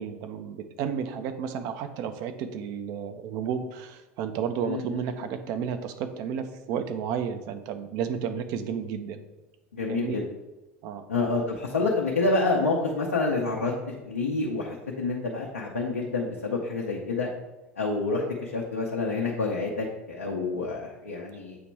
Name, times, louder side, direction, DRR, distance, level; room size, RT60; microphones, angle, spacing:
voice 1, 0.0-9.2 9.9-10.2 10.8-11.1, right 7 dB, 50° right, 9 dB, 0.6 m, -32 dB
voice 2, 4.6-5.0 9.7-10.2 11.1-17.3 17.8-21.6, left 3 dB, 80° left, -2 dB, 0.8 m, -28 dB
8.0 x 2.9 x 4.6 m, 1.1 s
figure-of-eight pair, 80°, 7 cm